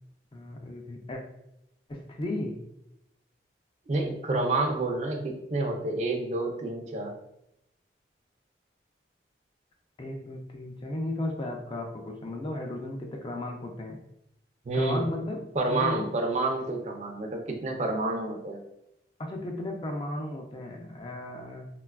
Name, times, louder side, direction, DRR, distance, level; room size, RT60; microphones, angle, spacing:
voice 1, 0.3-1.2 1.9-2.6 10.0-14.0 14.7-16.1 19.2-21.7, left 1 dB, 30° left, 2 dB, 0.3 m, -35 dB
voice 2, 3.9-7.2 14.7-15.1 15.6-18.6, right 2 dB, 40° right, 3 dB, 0.4 m, -29 dB
3.9 x 2.2 x 2.2 m, 0.83 s
head